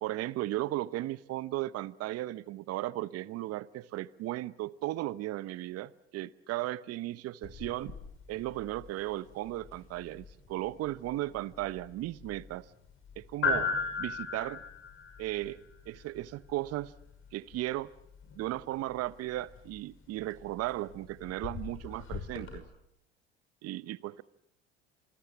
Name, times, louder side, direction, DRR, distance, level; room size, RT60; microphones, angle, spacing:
voice 1, 0.0-7.9 8.3-12.7 13.2-13.7 14.0-14.6 15.2-15.6 15.9-16.9 17.3-17.9 18.4-22.6 23.6-24.2, right 16 dB, 50° right, 0.9 m, -36 dB
sound 1, 7.4-22.6, left 4 dB, 40° left, 5.7 m, -40 dB
27.5 x 20.5 x 7.2 m
hypercardioid pair, 75°, 32 cm